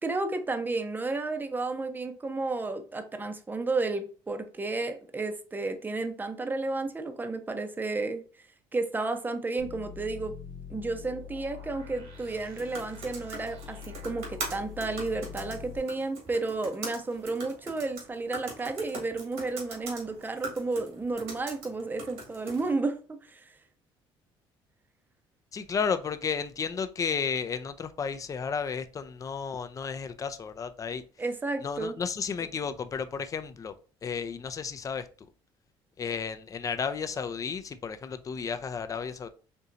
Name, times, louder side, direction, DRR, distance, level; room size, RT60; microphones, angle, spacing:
voice 1, 0.0-8.2 8.7-10.3 10.7-23.5 31.2-31.9, right 3 dB, 20° right, 0.6 m, -32 dB
sound 1, 9.6-15.8, left 7 dB, 65° right, 1.0 m, -44 dB
sound 2, 12.2-22.7, right 3 dB, 85° right, 1.5 m, -42 dB
voice 2, 25.5-31.0 31.6-33.8 34.0-35.1 36.0-39.3, left 6 dB, 30° left, 0.4 m, -33 dB
4.4 x 2.7 x 2.5 m
cardioid pair, 95°, 11 cm